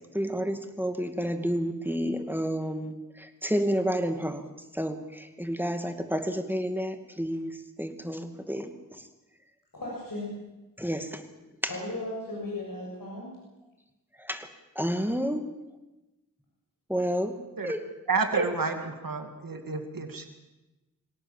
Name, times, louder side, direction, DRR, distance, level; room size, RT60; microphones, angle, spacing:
voice 1, 0.1-4.4 4.7-9.0 10.8-11.2 14.2-14.5 14.8-15.5 16.9-17.9, equal, 5° right, 7 dB, 2.3 m, -30 dB
voice 2, 9.7-10.3 11.7-13.3, left 2 dB, 80° left, -3 dB, 7.0 m, -36 dB
voice 3, 18.1-20.3, right 4 dB, 90° right, 5 dB, 2.5 m, -29 dB
25.0 x 17.5 x 7.4 m, 1.0 s
wide cardioid pair, 40°, 33 cm